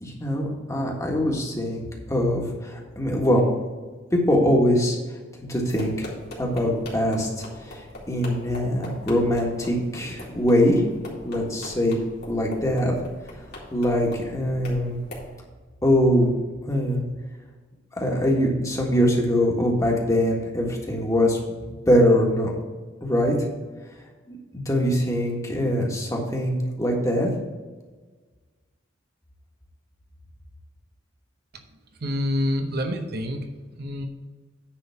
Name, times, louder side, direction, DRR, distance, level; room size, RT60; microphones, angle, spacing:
voice 1, 0.0-3.4 4.1-5.0 5.4-6.1 6.4-7.8 8.1-10.8 11.2-12.0 12.3-12.9 13.7-15.0 15.8-16.4 16.7-17.0 18.0-21.4 21.8-22.5 23.0-23.3 24.3-27.3, equal, 15° left, -1 dB, 1.6 m, -22 dB
sound 1, 5.6-15.3, left 1 dB, 55° left, 2.6 m, -42 dB
voice 2, 32.0-33.5 33.8-34.1, left 1 dB, 55° right, 5 dB, 0.8 m, -27 dB
9.9 x 3.8 x 7.0 m, 1.4 s
head